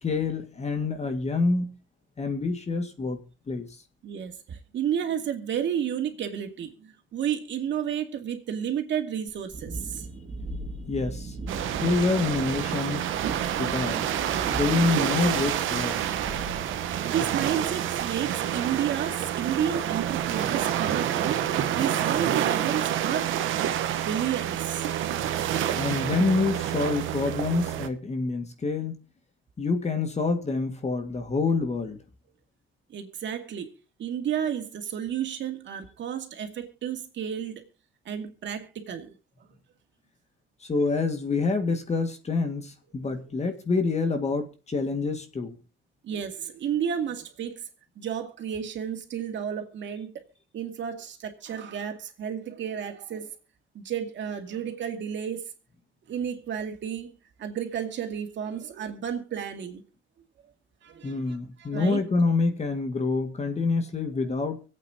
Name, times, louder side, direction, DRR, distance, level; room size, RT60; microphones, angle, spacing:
voice 1, 0.0-1.7 2.2-3.7 10.9-11.4 11.8-13.0 13.6-14.1 14.5-16.1 25.7-29.0 29.6-32.0 40.7-45.6 61.0-64.6, left 3 dB, 35° left, 1.9 m, -27 dB
voice 2, 4.0-10.0 17.0-21.4 21.7-23.6 24.0-24.9 32.9-33.7 34.0-37.6 38.1-39.1 43.0-43.4 46.0-47.6 48.0-50.1 50.5-53.3 53.7-55.5 56.1-57.1 57.4-59.8 60.8-62.0, right 8 dB, 70° right, 2.3 m, -32 dB
Thunderstorm, 9.3-20.9, right 2 dB, 40° right, 2.2 m, -40 dB
sound 1, 11.5-27.9, right 10 dB, 85° right, 1.0 m, -28 dB
24.5 x 8.5 x 2.8 m
cardioid pair, 90°, 20 cm